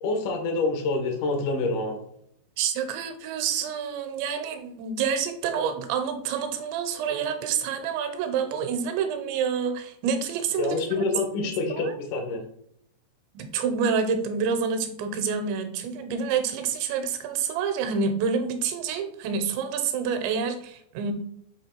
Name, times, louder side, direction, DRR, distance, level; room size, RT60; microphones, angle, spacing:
voice 1, 0.0-2.0 10.6-12.4, left 3 dB, 75° left, 3 dB, 1.8 m, -27 dB
voice 2, 2.6-11.0 11.7-11.9 13.3-21.1, right 6 dB, 90° right, 7 dB, 3.0 m, -28 dB
7.6 x 3.0 x 4.3 m, 0.72 s
omnidirectional pair, 5.1 m